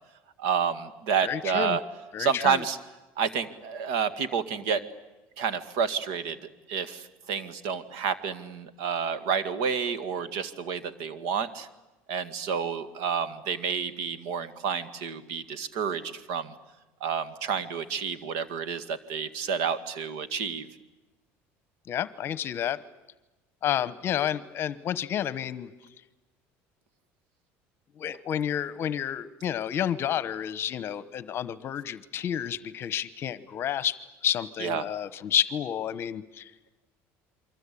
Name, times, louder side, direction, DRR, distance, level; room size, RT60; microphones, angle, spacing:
voice 1, 0.4-1.8 2.2-2.8 3.2-4.8 5.4-6.4 6.7-11.7 12.1-16.5 17.0-20.7 34.6-34.9, right 6 dB, 75° right, 12 dB, 2.0 m, -29 dB
voice 2, 1.2-1.8 2.1-2.6 21.9-22.8 23.6-25.7 28.0-36.5, left 10 dB, 45° left, 15 dB, 1.0 m, -30 dB
28.0 x 24.0 x 8.6 m, 1.1 s
cardioid pair, 130°, 6 cm